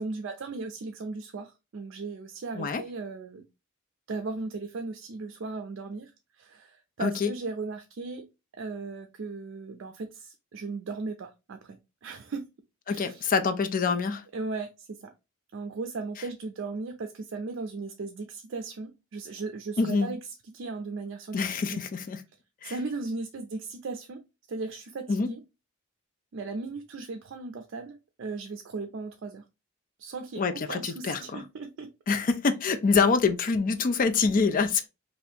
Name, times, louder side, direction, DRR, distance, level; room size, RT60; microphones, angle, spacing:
voice 1, 0.0-3.4 4.1-6.1 6.4-8.3 8.5-12.4 12.9-13.3 14.3-15.1 15.5-20.2 20.5-21.4 21.7-21.8 22.6-24.2 24.5-25.4 26.3-29.4 30.0-31.9 34.6-34.9, right 3 dB, 65° right, 0.4 m, -37 dB
voice 2, 7.0-7.3 12.9-14.2 19.8-20.1 21.3-22.2 22.6-22.7 25.1-25.3 30.4-31.4 32.1-34.9, left 4 dB, 45° left, 0.4 m, -25 dB
2.8 x 2.5 x 3.3 m
head